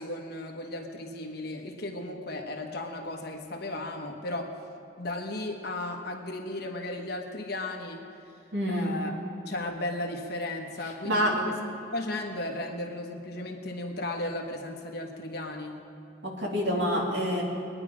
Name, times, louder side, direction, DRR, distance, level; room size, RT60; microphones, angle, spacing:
voice 1, 0.0-4.6 5.0-8.0 8.7-11.5 11.8-15.8, left 1 dB, 55° left, 2 dB, 1.2 m, -35 dB
voice 2, 8.5-8.9 11.0-11.4 16.2-17.4, equal, 60° right, -2 dB, 2.7 m, -27 dB
22.0 x 9.9 x 5.1 m, 2.8 s
head